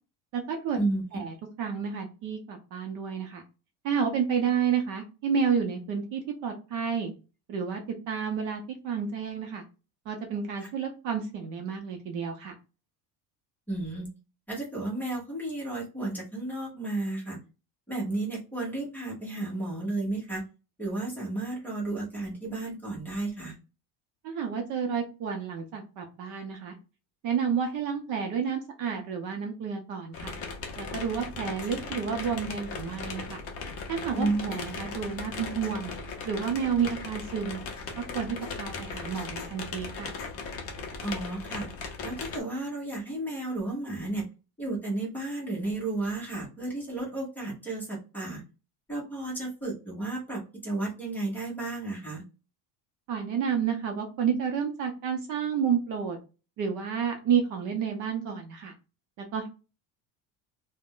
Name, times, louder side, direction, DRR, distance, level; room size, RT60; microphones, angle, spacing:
voice 1, 0.3-0.8 1.1-3.4 3.8-7.1 7.5-7.8 8.1-9.6 10.1-12.5 24.2-26.7 27.2-30.4 30.8-33.4 33.9-35.9 36.2-37.6 38.0-40.1 53.1-56.2 56.6-58.7 59.2-59.5, right 7 dB, 50° right, 4 dB, 0.6 m, -30 dB
voice 2, 13.7-14.1 14.5-17.4 17.9-20.4 20.8-23.6 34.1-34.5 41.0-41.7 42.0-44.3 44.6-48.4 48.9-52.2, right 2 dB, 5° left, -4 dB, 0.8 m, -33 dB
sound 1, 30.1-42.4, left 4 dB, 35° left, 0.5 m, -38 dB
2.4 x 2.1 x 3.5 m, 0.31 s
cardioid pair, 180°, 41 cm